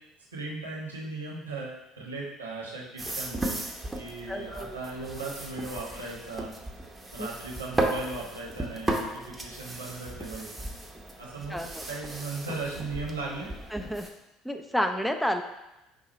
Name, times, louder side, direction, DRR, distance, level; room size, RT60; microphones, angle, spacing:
voice 1, 0.3-3.6 3.9-6.5 7.1-10.5 11.2-11.6 11.9-13.5, right 3 dB, 90° right, -4 dB, 1.0 m, -37 dB
sound 1, 3.0-14.1, right 2 dB, 15° right, 0.8 m, -35 dB
voice 2, 4.3-4.8 7.2-7.3 11.5-11.8 13.7-14.1 14.4-15.4, equal, 5° left, 6 dB, 0.4 m, -30 dB
5.4 x 2.3 x 4.3 m, 0.94 s
figure-of-eight pair, 60°, 0 cm